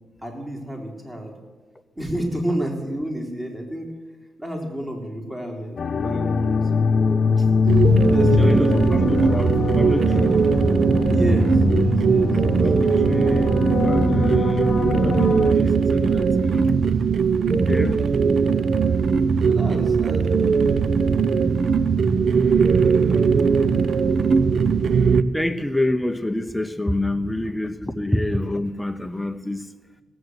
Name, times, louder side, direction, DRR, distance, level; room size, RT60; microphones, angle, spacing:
voice 1, 0.2-1.3 2.0-3.9 4.4-7.5 8.0-9.1 11.1-12.6 17.5-17.9 18.2-18.7 19.5-21.6 27.0-27.4, equal, 15° right, 3.6 m, -31 dB
sound 1, 5.8-15.5, left 5 dB, 50° left, 0.9 m, -22 dB
sound 2, 7.7-25.2, right 5 dB, 60° right, 0.5 m, -19 dB
voice 2, 8.4-10.4 12.6-13.5 13.8-16.6 17.5-18.0 23.1-23.2 25.3-29.7, left 1 dB, 10° left, 0.6 m, -27 dB
17.5 x 7.9 x 8.0 m
cardioid pair, 80°, 0 cm